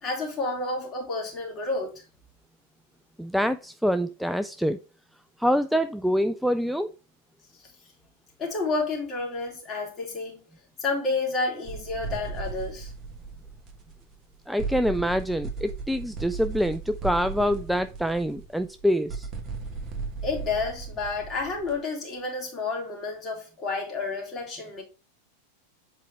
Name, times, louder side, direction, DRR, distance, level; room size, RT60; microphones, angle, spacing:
voice 1, 0.0-2.0 8.4-10.4 10.8-12.9 20.2-24.8, left 3 dB, 25° left, 2.7 m, -30 dB
voice 2, 3.2-4.8 5.4-6.9 14.5-19.3, equal, ahead, 0.3 m, -25 dB
sound 1, 11.6-14.3 14.6-21.8, right 4 dB, 25° right, 1.3 m, -36 dB
7.5 x 4.6 x 3.4 m
figure-of-eight pair, 90°, 0 cm